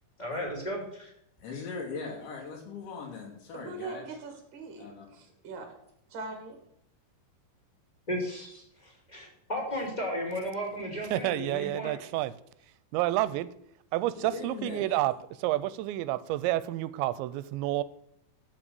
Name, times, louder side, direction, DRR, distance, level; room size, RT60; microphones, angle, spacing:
voice 1, 0.2-1.1 8.1-11.9, equal, 10° left, -1 dB, 2.2 m, -35 dB
voice 2, 1.4-4.2 4.8-5.1 14.2-15.0, left 4 dB, 80° left, -1 dB, 4.6 m, -40 dB
voice 3, 3.5-4.9 5.1-5.7 6.1-6.6, right 3 dB, 40° right, 4 dB, 1.8 m, -41 dB
voice 4, 11.1-12.3 12.9-13.5 13.9-15.1 15.4-17.8, right 15 dB, 85° right, 16 dB, 2.8 m, -29 dB
8.4 x 7.2 x 6.8 m, 0.75 s
omnidirectional pair, 5.2 m